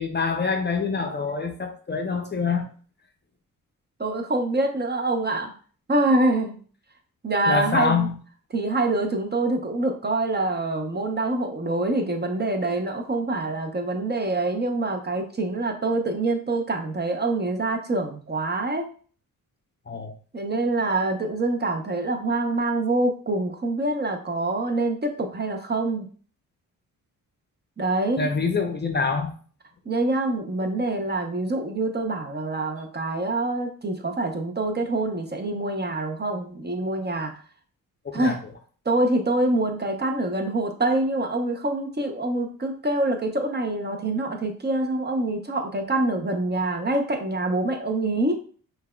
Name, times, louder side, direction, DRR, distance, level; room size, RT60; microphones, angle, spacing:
voice 1, 0.0-2.7 7.5-8.1 19.9-20.1 28.2-29.3 38.0-38.3, left 5 dB, 30° left, 4 dB, 0.6 m, -25 dB
voice 2, 4.0-5.5 5.9-6.6 7.2-8.1 8.5-18.9 20.3-26.1 27.8-28.3 29.9-37.4 38.1-38.4 38.9-48.4, right 2 dB, 30° right, 4 dB, 0.7 m, -25 dB
5.7 x 2.3 x 2.2 m, 0.42 s
cardioid pair, 70°, 36 cm